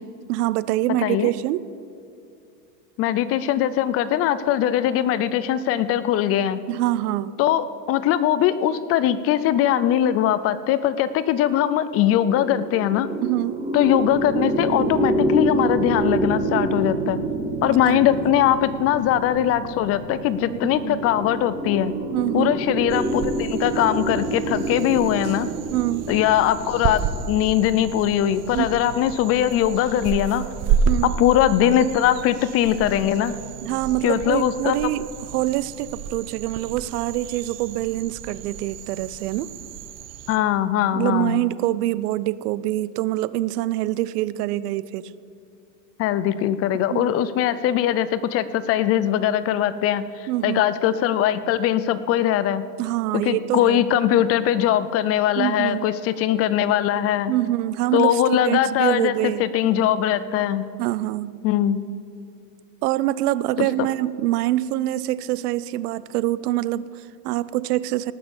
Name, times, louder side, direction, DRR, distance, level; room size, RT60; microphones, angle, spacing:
voice 1, 0.3-1.6 6.7-7.4 13.2-13.6 17.8-18.3 20.5-21.0 22.1-22.5 25.7-26.1 28.5-28.7 30.9-31.2 33.6-39.5 40.9-45.1 46.9-47.1 50.3-50.6 52.8-53.8 55.4-55.9 57.3-59.5 60.8-61.4 62.8-68.1, right 15 dB, 75° right, 18 dB, 0.7 m, -25 dB
voice 2, 3.0-6.6 7.4-13.1 13.7-17.2 17.6-21.9 22.3-25.5 26.1-30.4 31.0-33.4 34.0-34.9 40.3-41.4 46.0-52.6 53.1-57.3 57.9-60.6 61.4-61.8 63.6-63.9, left 11 dB, 30° left, 14 dB, 0.4 m, -21 dB
sound 1, 12.2-29.5, right 2 dB, 15° right, 1.7 m, -28 dB
sound 2, 22.9-40.4, right 6 dB, 35° right, 0.7 m, -31 dB
18.5 x 6.5 x 7.0 m, 2.5 s
supercardioid pair, 130°, 47 cm